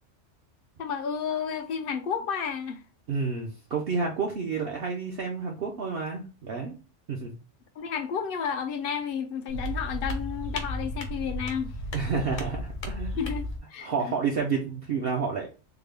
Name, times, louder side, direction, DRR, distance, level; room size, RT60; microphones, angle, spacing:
voice 1, 0.8-2.8 7.8-11.8 13.1-14.1, left 7 dB, 60° left, 0.6 m, -32 dB
voice 2, 3.1-6.7 7.1-7.3 11.9-13.1 13.8-15.5, right 5 dB, 60° right, 0.7 m, -30 dB
sound 1, 9.5-13.6, left 1 dB, 80° left, 1.1 m, -34 dB
3.6 x 2.2 x 3.2 m
omnidirectional pair, 1.3 m